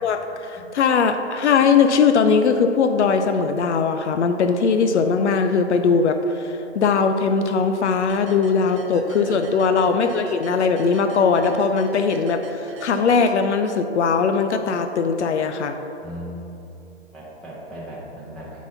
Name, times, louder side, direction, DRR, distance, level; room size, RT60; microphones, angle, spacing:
voice 1, 0.0-15.8, left 5 dB, 80° left, 7 dB, 0.5 m, -20 dB
sound 1, 8.1-13.9, right 5 dB, 30° right, 0.4 m, -38 dB
voice 2, 16.0-16.4 17.1-18.6, equal, ahead, -10 dB, 0.8 m, -37 dB
6.0 x 4.1 x 5.6 m, 3.0 s
hypercardioid pair, 135°, 34 cm